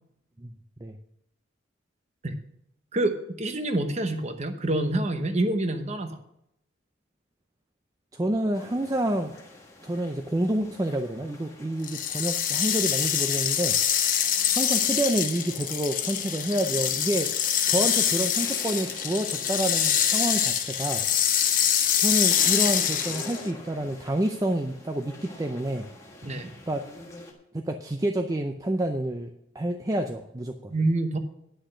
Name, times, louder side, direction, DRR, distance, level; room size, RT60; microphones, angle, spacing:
voice 1, 2.9-6.2 26.2-26.5 30.7-31.2, right 1 dB, 35° right, 7 dB, 0.9 m, -27 dB
voice 2, 8.1-9.3 9.8-13.8 14.6-21.0 22.0-25.9 26.7-26.8 27.5-30.7, right 1 dB, 15° right, 5 dB, 0.5 m, -28 dB
sound 1, 8.5-27.3, left 2 dB, 15° left, 1.3 m, -47 dB
sound 2, 11.8-23.5, left 9 dB, 40° left, 0.9 m, -25 dB
10.0 x 6.3 x 6.4 m, 0.80 s
head